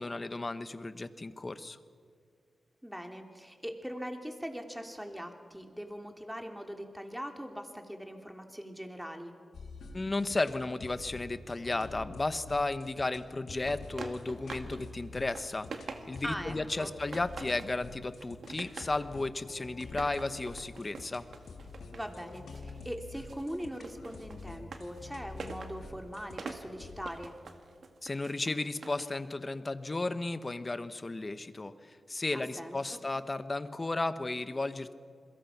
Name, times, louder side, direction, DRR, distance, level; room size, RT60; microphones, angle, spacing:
voice 1, 0.0-1.8 9.9-21.3 28.0-34.9, left 2 dB, 35° left, 12 dB, 1.3 m, -34 dB
voice 2, 2.8-9.3 16.2-16.9 21.9-27.3 32.3-33.0, equal, 5° right, 4 dB, 3.0 m, -41 dB
sound 1, 9.5-27.1, left 3 dB, 80° left, 2.1 m, -47 dB
sound 2, 13.7-14.8 15.1-16.4 16.8-17.8 18.1-19.0 19.8-22.8 23.1-29.2, right 4 dB, 70° right, 2.0 m, -46 dB
28.0 x 22.5 x 6.1 m, 2.1 s
cardioid pair, 55°, 0 cm